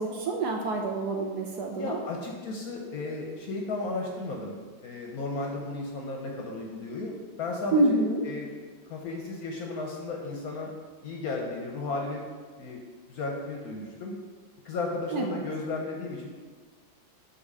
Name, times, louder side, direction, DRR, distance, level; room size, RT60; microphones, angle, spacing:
voice 1, 0.0-2.0 7.7-8.2 15.1-15.4, right 2 dB, 70° right, 2 dB, 1.0 m, -27 dB
voice 2, 1.8-4.6 4.8-8.5 8.9-10.7 11.0-12.3 12.6-12.8 13.1-14.2 14.6-16.3, left 3 dB, 65° left, 0 dB, 1.0 m, -34 dB
6.4 x 2.8 x 5.4 m, 1.5 s
omnidirectional pair, 2.0 m